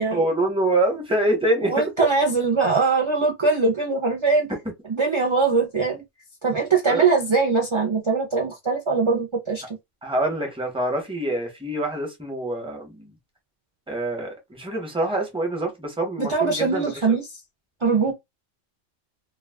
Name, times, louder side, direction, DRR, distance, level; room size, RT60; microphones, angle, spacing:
voice 1, 0.0-2.1 6.9-7.1 10.0-13.1 13.9-16.9 18.0-18.1, right 1 dB, 5° right, 0.7 m, -25 dB
voice 2, 1.7-4.5 4.9-6.0 6.4-9.6 16.2-17.2 17.8-18.1, right 4 dB, 35° right, 0.5 m, -21 dB
2.4 x 2.3 x 3.4 m
omnidirectional pair, 1.3 m